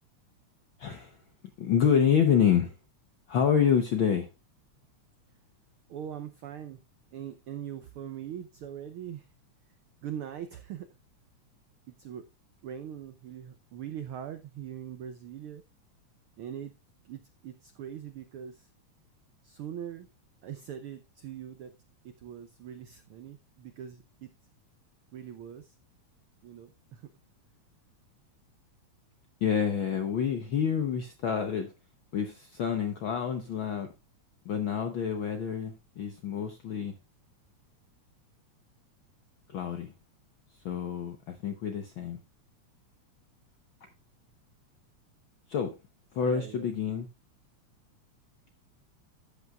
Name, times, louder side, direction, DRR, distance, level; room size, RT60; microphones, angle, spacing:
voice 1, 0.8-1.2 1.6-2.7 3.3-4.3 29.4-31.7 32.1-33.9 34.4-36.9 39.5-39.9 40.6-42.2 45.5-45.7 46.1-47.1, left 7 dB, 70° left, 1.1 m, -27 dB
voice 2, 5.9-6.8 7.1-9.3 10.0-10.9 11.9-12.2 12.6-15.6 16.4-16.7 17.0-18.7 19.4-20.1 20.4-21.7 22.0-24.3 25.1-25.8 26.4-27.1 46.2-46.7, right 9 dB, 85° right, 1.2 m, -41 dB
13.5 x 8.3 x 2.3 m
omnidirectional pair, 3.4 m